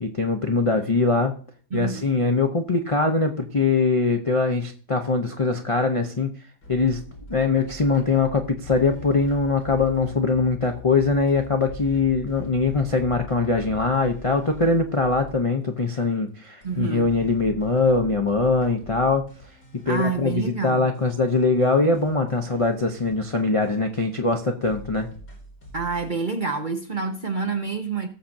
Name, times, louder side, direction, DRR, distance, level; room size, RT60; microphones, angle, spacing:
voice 1, 0.0-1.3 1.7-6.3 6.7-7.0 7.3-19.2 19.9-25.1, left 3 dB, 40° left, 0.4 m, -22 dB
voice 2, 1.7-2.1 16.6-17.1 19.9-20.9 25.7-28.1, right 4 dB, 45° right, 0.7 m, -27 dB
sound 1, 6.6-15.5 15.9-16.0 16.6-21.0 21.3-21.4 21.6-21.7 21.9-24.3 24.6-26.3, left 1 dB, 85° left, 4.7 m, -43 dB
18.5 x 7.2 x 2.6 m
omnidirectional pair, 1.7 m